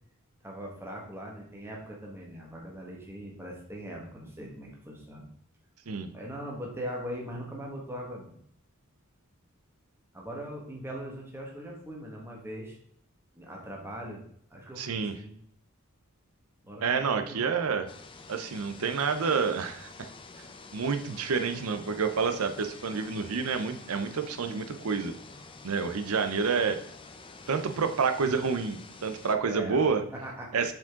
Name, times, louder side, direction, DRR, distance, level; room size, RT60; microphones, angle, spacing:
voice 1, 0.4-5.2 6.1-8.4 10.1-12.8 13.3-15.3 16.6-17.4 29.4-29.8 30.1-30.6, equal, 10° right, -2 dB, 1.5 m, -40 dB
voice 2, 14.8-15.1 16.8-17.9 18.3-19.9 20.4-20.5 20.7-25.1 25.6-26.8 27.5-30.0 30.5-30.7, right 5 dB, 85° right, 8 dB, 0.6 m, -28 dB
sound 1, 17.9-29.3, left 3 dB, 25° left, 0.6 m, -48 dB
7.4 x 5.1 x 3.7 m, 0.63 s
head